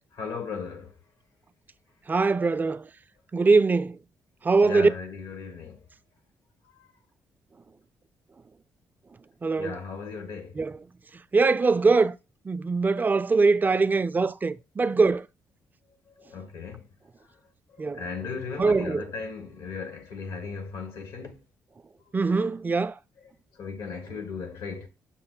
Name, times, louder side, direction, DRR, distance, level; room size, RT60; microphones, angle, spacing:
voice 1, 0.1-1.0 4.6-5.9 6.7-6.9 9.6-10.6 16.1-16.9 17.2-17.4 17.7-21.4 23.5-24.9, left 5 dB, 75° left, 1.2 m, -37 dB
voice 2, 2.1-2.9 3.3-4.0 4.4-4.9 9.4-9.8 10.6-10.8 11.3-12.2 12.5-15.3 17.8-18.0 18.6-19.0 22.1-23.0, right 4 dB, 25° right, 0.3 m, -22 dB
5.9 x 2.1 x 3.8 m
supercardioid pair, 65°, 7 cm